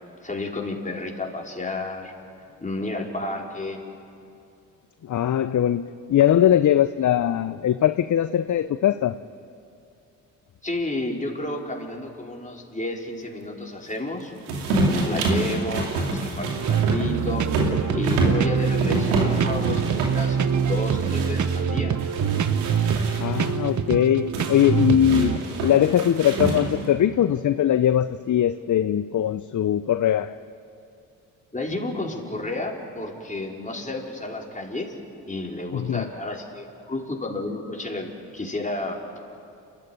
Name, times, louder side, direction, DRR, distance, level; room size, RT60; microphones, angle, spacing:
voice 1, 0.2-2.1 2.6-3.8 10.6-14.3 14.8-22.0 25.1-25.4 31.5-35.0 35.2-39.2, left 2 dB, 15° left, -1 dB, 4.9 m, -31 dB
voice 2, 5.0-9.2 23.2-25.3 25.6-30.4 35.7-36.0, left 10 dB, 45° left, 12 dB, 0.7 m, -21 dB
sound 1, 14.5-21.6 22.0-23.5 24.3-26.9, right 2 dB, 85° right, 2.8 m, -27 dB
sound 2, 16.4-25.4, right 7 dB, 40° right, 1.0 m, -25 dB
29.5 x 14.0 x 9.4 m, 2.6 s
hypercardioid pair, 45°, 43 cm